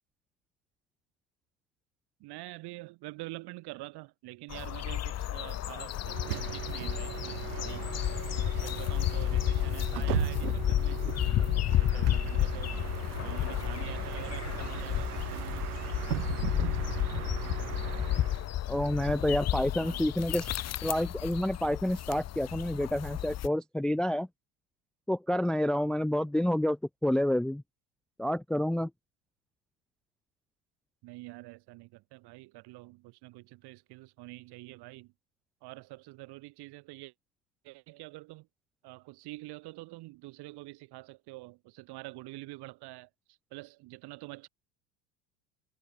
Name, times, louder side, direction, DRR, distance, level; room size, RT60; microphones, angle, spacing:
voice 1, 2.2-7.9 8.4-12.7 13.2-15.7 19.7-20.0 25.9-26.3 31.0-35.1 35.6-37.1 37.6-38.5 38.8-43.1 43.5-44.5, right 21 dB, 60° right, 6.7 m, -46 dB
sound 1, 4.5-23.5, left 13 dB, 35° left, 1.0 m, -32 dB
Bus, 6.0-18.5, right 17 dB, 80° right, 4.3 m, -37 dB
voice 2, 18.7-20.5 20.8-24.3 25.1-27.6 28.2-28.9, left 1 dB, ahead, 0.5 m, -29 dB
hypercardioid pair, 85°, 45 cm